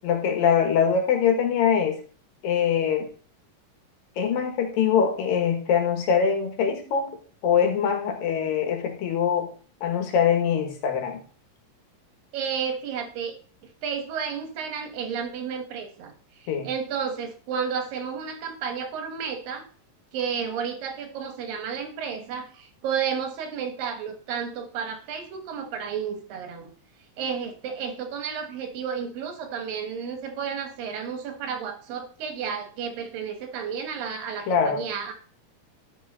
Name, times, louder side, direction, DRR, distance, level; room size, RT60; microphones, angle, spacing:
voice 1, 0.0-2.0 2.4-3.1 4.2-7.1 7.4-9.5 9.8-11.2 16.5-16.7 34.5-34.8, left 7 dB, 85° left, 4 dB, 3.3 m, -23 dB
voice 2, 12.3-13.3 13.6-19.6 20.1-26.7 27.2-35.1, right 7 dB, 90° right, 6 dB, 3.2 m, -32 dB
12.0 x 5.6 x 4.2 m, 0.43 s
omnidirectional pair, 3.9 m